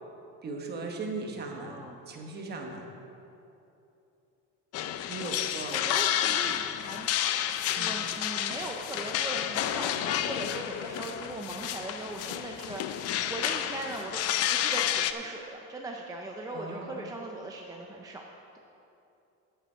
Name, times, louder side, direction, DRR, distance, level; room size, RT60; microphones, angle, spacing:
voice 1, 0.4-1.8 2.1-2.8 5.1-5.8 7.7-7.9 16.5-17.1, right 3 dB, 30° right, 2 dB, 1.1 m, -38 dB
voice 2, 1.5-2.0 5.7-7.1 7.7-12.8 13.3-18.2, right 2 dB, 10° right, 0 dB, 0.4 m, -39 dB
sound 1, 4.7-15.1, left 11 dB, 50° left, 0.4 m, -30 dB
9.2 x 8.2 x 5.6 m, 2.8 s
cardioid pair, 175°, 33 cm